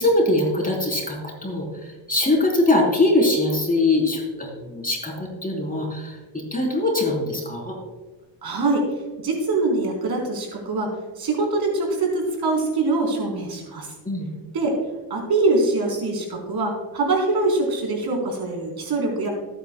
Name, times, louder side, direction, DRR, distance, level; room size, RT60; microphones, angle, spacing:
voice 1, 0.0-7.8 14.0-14.3, left 2 dB, 20° left, -1 dB, 3.7 m, -22 dB
voice 2, 8.4-8.8 9.2-10.9 11.2-13.9 14.5-14.8 15.1-19.3, right 2 dB, 55° right, 0 dB, 4.0 m, -23 dB
18.5 x 9.3 x 2.3 m, 1.3 s
cardioid pair, 95°, 46 cm